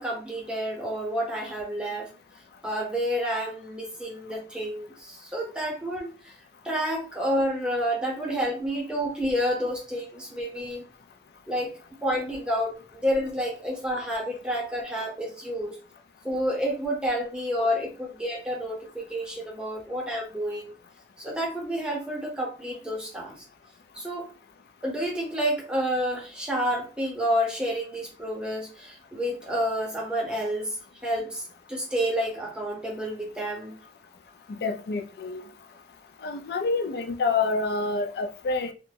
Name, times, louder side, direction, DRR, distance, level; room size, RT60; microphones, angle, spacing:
voice 1, 0.0-2.1 2.6-6.3 6.6-10.8 11.5-11.7 12.0-15.8 16.2-20.7 21.2-23.3 24.0-24.3 24.8-30.8 31.0-31.4 31.7-33.7, equal, 5° right, 0.7 m, -29 dB
voice 2, 34.6-35.4 36.2-38.7, left 3 dB, 60° left, 0.3 m, -27 dB
2.5 x 2.1 x 3.2 m
head